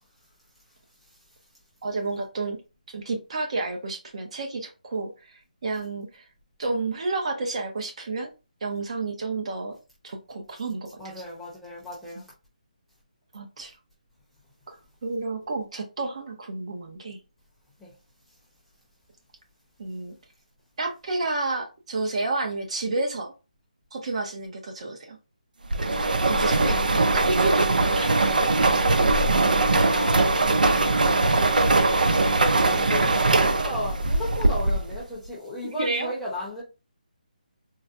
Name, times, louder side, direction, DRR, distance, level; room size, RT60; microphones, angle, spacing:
voice 1, 1.8-2.6 2.9-6.3 6.6-8.3 8.6-9.7 10.0-10.9 13.3-13.7 14.7-14.8 15.0-17.2 19.8-20.1 20.8-23.3 23.9-25.2 26.3-28.1 35.8-36.1, right 3 dB, 45° right, 0.8 m, -30 dB
voice 2, 11.0-12.3 17.8-18.0 29.8-31.1 32.5-36.6, left 1 dB, ahead, 0.8 m, -36 dB
sound 1, 25.7-35.0, right 2 dB, 85° right, 0.5 m, -21 dB
4.0 x 2.1 x 2.5 m
hypercardioid pair, 165°, 4 cm